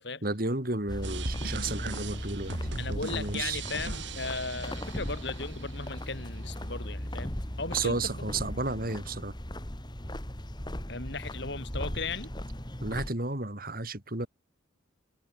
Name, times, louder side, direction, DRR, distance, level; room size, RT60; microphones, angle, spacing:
voice 1, 0.2-2.6 2.9-3.6 7.7-9.4 12.8-14.3, right 2 dB, 45° right, 3.2 m, -32 dB
sound 1, 0.9-13.1, left 1 dB, 20° left, 2.5 m, -38 dB
sound 2, 1.0-6.0, right 3 dB, 65° right, 2.3 m, -39 dB
voice 2, 2.8-8.1 10.9-12.3, left 3 dB, 60° left, 3.9 m, -37 dB
head